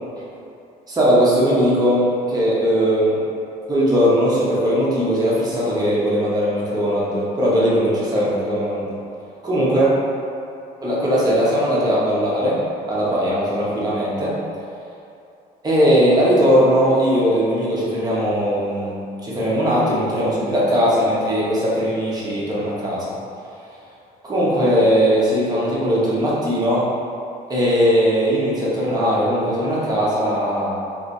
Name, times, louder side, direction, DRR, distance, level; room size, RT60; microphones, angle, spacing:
voice 1, 0.9-3.2 3.7-8.9 9.4-10.0 10.8-14.4 15.6-18.9 19.2-23.0 24.2-26.9 27.5-30.7, equal, 25° right, -7 dB, 1.2 m, -19 dB
3.2 x 3.2 x 4.0 m, 2.7 s
cardioid pair, 110°, 17 cm